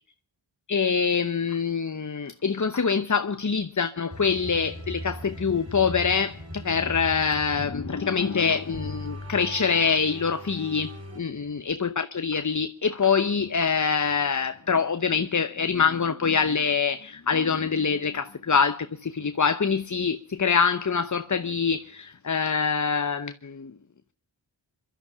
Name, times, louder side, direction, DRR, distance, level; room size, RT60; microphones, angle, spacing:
voice 1, 0.7-23.7, left 6 dB, 40° left, 0.9 m, -25 dB
sound 1, 4.1-11.2, equal, 30° right, 4.3 m, -39 dB
22.5 x 12.5 x 4.8 m
wide cardioid pair, 45°, 47 cm